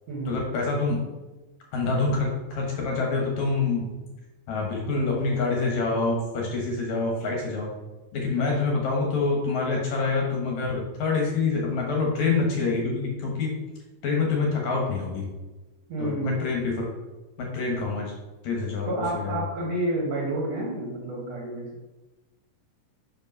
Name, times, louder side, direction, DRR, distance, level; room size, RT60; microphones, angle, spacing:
voice 1, 0.3-1.0 1.7-3.9 4.5-7.7 8.1-13.5 14.0-15.3 16.0-16.9 17.4-18.1 18.4-19.4, left 3 dB, 65° left, -1 dB, 2.2 m, -26 dB
voice 2, 15.9-16.4 18.9-21.7, right 2 dB, 60° right, -3 dB, 2.0 m, -29 dB
5.4 x 5.2 x 5.3 m, 1.1 s
omnidirectional pair, 4.0 m